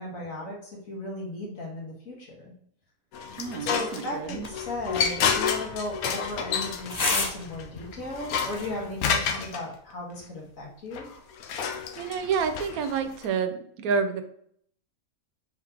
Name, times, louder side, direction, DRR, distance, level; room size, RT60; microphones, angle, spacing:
voice 1, 0.0-2.5 3.6-11.1, left 2 dB, 65° left, -3 dB, 1.8 m, -36 dB
sound 1, 3.1-9.6 10.9-13.3, left 7 dB, 90° left, 1.1 m, -30 dB
voice 2, 3.4-4.4 12.0-14.2, right 6 dB, 85° right, 9 dB, 1.1 m, -29 dB
sound 2, 4.3-9.3, left 3 dB, 40° left, 0.6 m, -35 dB
4.8 x 3.6 x 2.9 m, 0.65 s
omnidirectional pair, 1.5 m